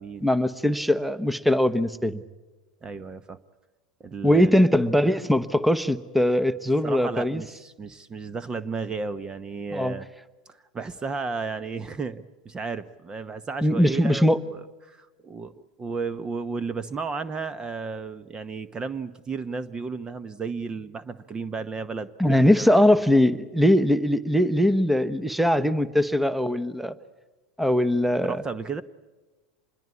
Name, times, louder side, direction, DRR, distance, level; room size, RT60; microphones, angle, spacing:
voice 1, 0.2-2.2 4.2-7.4 9.7-9.9 13.6-14.4 22.2-26.9 27.6-28.4, left 1 dB, ahead, 15 dB, 1.1 m, -21 dB
voice 2, 2.8-3.4 4.0-4.5 6.8-10.1 10.5-22.7 28.2-28.8, right 4 dB, 25° right, 15 dB, 1.0 m, -33 dB
26.0 x 21.5 x 8.4 m, 1.2 s
hypercardioid pair, 90°, 3 cm